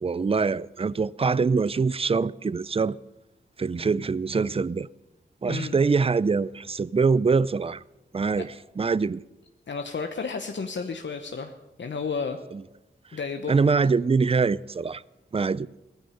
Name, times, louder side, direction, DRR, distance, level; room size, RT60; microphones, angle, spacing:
voice 1, 0.0-3.0 3.6-4.9 5.4-7.8 8.1-9.2 12.5-12.6 13.5-15.0 15.3-15.7, right 4 dB, 30° right, 0.4 m, -24 dB
voice 2, 9.7-11.5 11.8-12.4 13.1-13.8, left 5 dB, 65° left, 1.0 m, -32 dB
17.0 x 14.0 x 5.7 m
cardioid pair, 55°, 20 cm